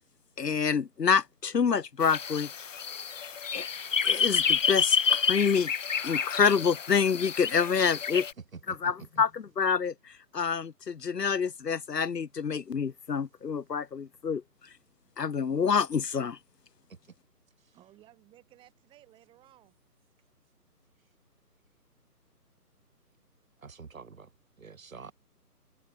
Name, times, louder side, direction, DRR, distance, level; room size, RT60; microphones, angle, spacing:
voice 1, 0.4-2.5 3.5-3.7 4.0-5.7 6.0-8.3 8.7-9.9 10.3-14.4 15.2-16.4, left 6 dB, 80° left, 0.9 m, -27 dB
sound 1, 2.0-8.3, left 6 dB, 50° left, 0.7 m, -29 dB
voice 2, 8.5-9.2 16.9-17.0 17.6-17.8 23.6-24.3 24.6-25.1, right 5 dB, 55° right, 2.0 m, -47 dB
voice 3, 17.7-19.8, right 14 dB, 10° right, 3.9 m, -58 dB
open air
figure-of-eight pair, 145°, 48 cm